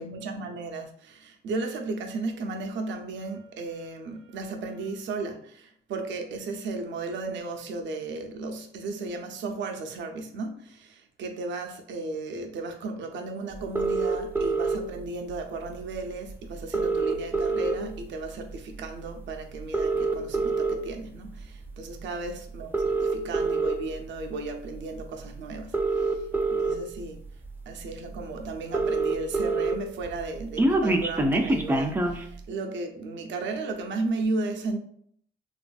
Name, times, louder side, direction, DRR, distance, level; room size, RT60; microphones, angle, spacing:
voice 1, 0.0-26.2 26.5-27.2 27.7-34.8, right 3 dB, 70° right, 0.6 m, -35 dB
sound 1, 13.8-14.8 15.9-16.0 16.3-16.4 16.6-18.0 18.5-18.7 19.6-20.7 21.5-21.7 22.6-23.8 25.0-25.1 25.6-26.7 27.4-27.5 27.8-27.9 28.2-28.3 28.4-29.7 30.1-32.2, right 3 dB, 10° right, 0.4 m, -25 dB
3.0 x 2.5 x 2.3 m
cardioid pair, 90°, 20 cm